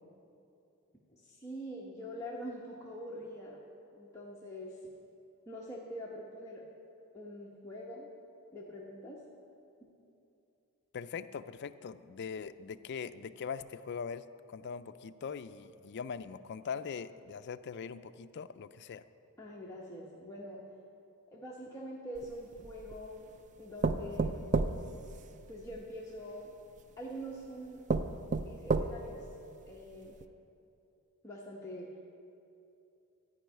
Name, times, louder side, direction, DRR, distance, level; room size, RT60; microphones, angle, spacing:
voice 1, 1.1-3.6 3.9-4.8 5.5-6.6 7.1-8.1 8.5-9.2 19.4-20.6 21.3-23.3 23.6-24.5 25.5-26.5 27.0-27.8 28.4-29.2 29.6-30.2 31.2-31.9, equal, 15° left, -5 dB, 1.0 m, -44 dB
voice 2, 10.9-19.0, left 6 dB, 50° left, 11 dB, 0.4 m, -41 dB
sound 1, 22.2-23.0 23.8-25.8 26.8-26.9 27.4-27.5 27.9-29.2 29.7-29.8 30.2-30.3, right 3 dB, 35° right, 0.4 m, -32 dB
13.5 x 5.4 x 9.3 m, 2.7 s
head